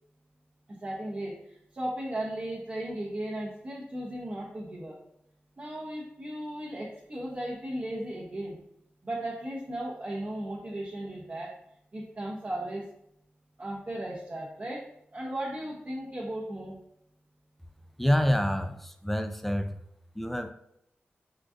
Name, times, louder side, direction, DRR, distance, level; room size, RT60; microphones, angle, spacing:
voice 1, 0.7-5.0 5.6-8.6 9.0-11.5 11.9-12.8 13.6-14.8 15.1-16.8, right 1 dB, 40° right, -5 dB, 0.6 m, -36 dB
voice 2, 18.0-19.7 20.2-20.5, equal, 5° left, 8 dB, 0.3 m, -27 dB
3.8 x 2.3 x 2.4 m, 0.74 s
cardioid pair, 60°, 4 cm